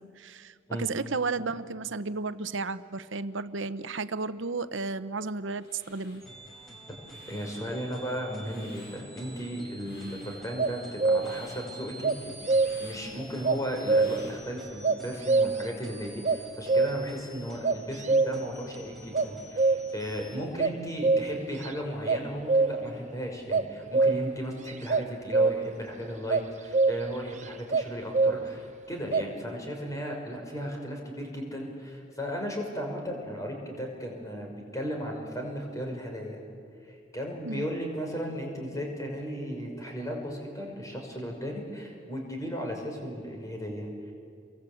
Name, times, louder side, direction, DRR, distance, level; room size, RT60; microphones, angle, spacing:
voice 1, 0.0-6.2 37.4-37.7, right 4 dB, 70° right, 13 dB, 0.9 m, -33 dB
sound 1, 5.5-14.6, left 2 dB, 60° left, 6.9 m, -54 dB
sound 2, 6.2-20.4, right 1 dB, ahead, 4.3 m, -48 dB
voice 2, 7.3-36.4 36.9-44.1, equal, 15° left, 1 dB, 5.4 m, -36 dB
sound 3, 10.6-11.5 12.0-13.0 13.4-14.4 14.8-15.8 16.2-17.2 17.6-18.6 19.1-20.1 20.6-21.7 22.1-23.0 23.5-24.4 24.9-25.8 26.3-27.2 27.7-28.6 29.1-29.3, right 3 dB, 35° right, 0.7 m, -25 dB
28.5 x 24.0 x 8.6 m, 2.5 s
head